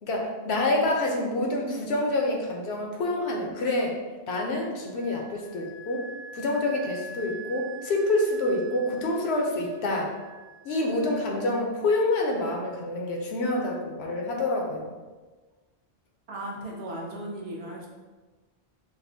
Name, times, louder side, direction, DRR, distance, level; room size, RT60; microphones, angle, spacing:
voice 1, 0.0-4.0 4.3-6.0 6.3-10.1 10.6-15.0, left 2 dB, 85° left, 0 dB, 1.0 m, -27 dB
Wind instrument woodwind instrument, 4.4-11.8, right 3 dB, 25° left, 0.4 m, -46 dB
voice 2, 16.3-17.9, right 1 dB, 75° right, -1 dB, 1.0 m, -36 dB
5.1 x 2.0 x 2.7 m, 1.3 s
omnidirectional pair, 1.1 m